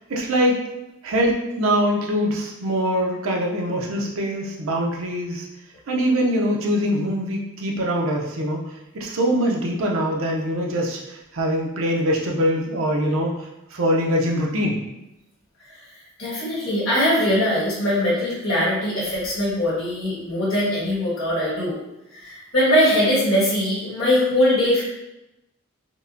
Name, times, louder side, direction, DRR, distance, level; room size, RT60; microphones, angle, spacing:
voice 1, 0.1-0.6 1.0-5.5 5.9-8.6 8.9-11.0 11.3-13.3 13.7-14.8, equal, 75° right, 0 dB, 0.6 m, -23 dB
voice 2, 16.2-21.8 22.1-24.8, left 1 dB, 70° left, -7 dB, 1.4 m, -21 dB
4.6 x 2.1 x 2.6 m, 0.92 s
head